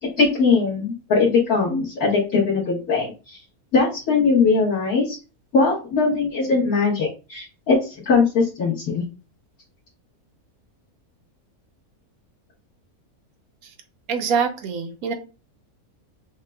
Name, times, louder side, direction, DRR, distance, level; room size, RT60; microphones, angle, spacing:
voice 1, 0.0-3.4 3.7-5.2 5.5-9.0, left 4 dB, 70° left, -7 dB, 1.7 m, -20 dB
voice 2, 14.1-15.1, right 6 dB, 70° right, 6 dB, 1.1 m, -24 dB
6.4 x 2.2 x 2.2 m, 0.32 s
omnidirectional pair, 1.6 m